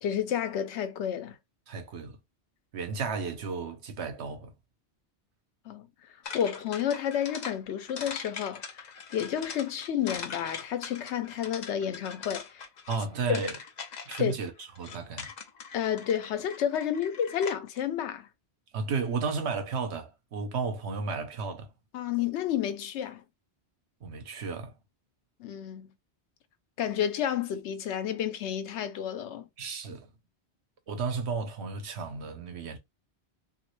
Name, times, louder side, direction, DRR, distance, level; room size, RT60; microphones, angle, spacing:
voice 1, 0.0-1.4 5.7-5.9 6.3-8.6 9.1-12.7 13.3-13.4 14.2-14.4 15.7-18.3 21.9-23.2 25.4-25.9 26.8-29.5, left 9 dB, 85° left, 0.9 m, -30 dB
voice 2, 1.7-2.2 2.7-4.5 12.9-13.6 14.1-14.5 14.8-15.3 18.7-21.7 24.0-24.7 29.6-30.1 30.9-32.8, right 4 dB, 75° right, 1.0 m, -33 dB
sound 1, 6.2-17.8, left 6 dB, 50° left, 0.6 m, -42 dB
3.0 x 2.6 x 3.1 m
omnidirectional pair, 1.1 m